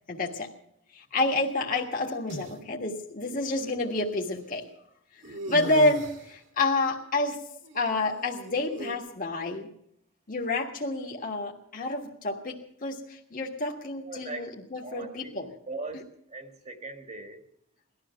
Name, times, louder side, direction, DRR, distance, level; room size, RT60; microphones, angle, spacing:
voice 1, 0.1-0.5 0.9-4.7 5.3-7.4 7.7-9.7 10.3-15.5, left 2 dB, 45° left, 1.6 m, -29 dB
sound 1, 1.4-2.5 3.5-3.6 5.2-6.4 7.6-9.0, right 1 dB, 65° right, 2.0 m, -40 dB
voice 2, 14.0-15.4 15.7-17.4, right 3 dB, 35° right, 1.5 m, -40 dB
18.5 x 12.5 x 5.8 m
head